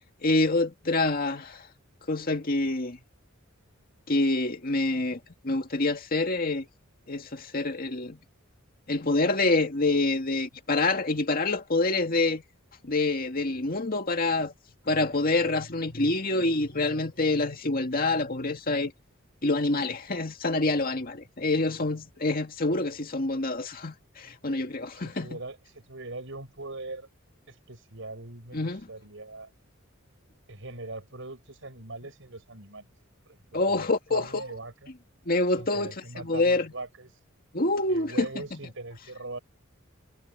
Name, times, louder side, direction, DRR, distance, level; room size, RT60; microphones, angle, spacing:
voice 1, 0.2-1.7 2.1-3.0 4.1-6.7 7.1-8.2 8.9-12.4 12.8-14.5 14.9-18.9 19.4-25.4 28.5-28.8 33.5-34.4 35.3-36.7 37.5-38.6, left 2 dB, 45° left, 2.1 m, -27 dB
voice 2, 25.0-27.1 27.5-29.5 30.5-32.9 33.3-34.9 35.6-37.1 37.9-39.4, right 2 dB, 65° right, 7.9 m, -41 dB
head